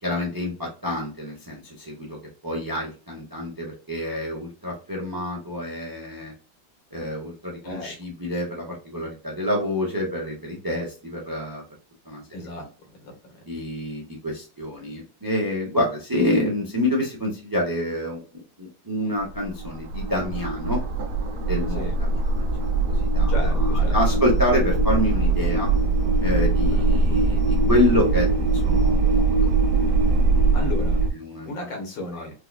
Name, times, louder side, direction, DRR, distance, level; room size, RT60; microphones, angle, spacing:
voice 1, 0.0-2.2 2.4-6.3 6.9-11.6 12.1-12.2 13.5-20.8 21.5-22.7 23.1-23.3 23.7-25.7 26.2-29.5 31.1-31.5 32.1-32.2, left 1 dB, 25° right, -2 dB, 0.4 m, -27 dB
voice 2, 12.3-12.7 13.0-13.1 21.7-21.9 23.3-24.2 26.7-26.9 30.5-31.0 31.4-32.3, left 1 dB, 85° left, 2 dB, 2.0 m, -34 dB
sound 1, 19.2-31.1, right 3 dB, 70° right, 1.2 m, -21 dB
4.7 x 2.3 x 2.3 m, 0.36 s
omnidirectional pair, 2.0 m